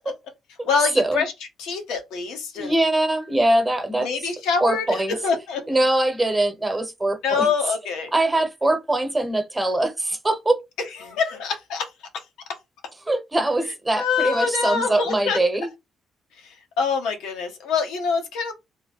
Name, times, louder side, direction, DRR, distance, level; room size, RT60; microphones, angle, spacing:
voice 1, 0.7-1.3 1.6-2.8 4.0-5.6 7.2-8.1 11.0-11.9 13.9-15.4 16.4-18.5, left 5 dB, 90° left, 1.0 m, -25 dB
voice 2, 2.5-4.1 4.6-5.1 5.7-7.5 8.1-10.6 13.1-15.7, right 1 dB, 15° right, 1.0 m, -22 dB
3.3 x 2.1 x 4.0 m
cardioid pair, 90°, 0 cm